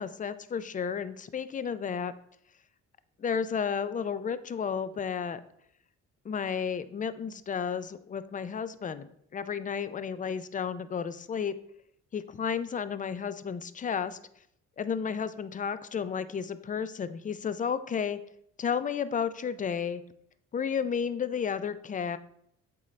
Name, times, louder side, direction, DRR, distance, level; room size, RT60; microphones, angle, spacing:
voice 1, 0.0-2.1 3.2-5.4 6.2-11.5 12.1-14.2 14.8-18.2 18.6-20.0 20.5-22.2, left 7 dB, 25° left, 13 dB, 0.4 m, -32 dB
7.9 x 3.8 x 3.2 m, 0.70 s
cardioid pair, 90°, 30 cm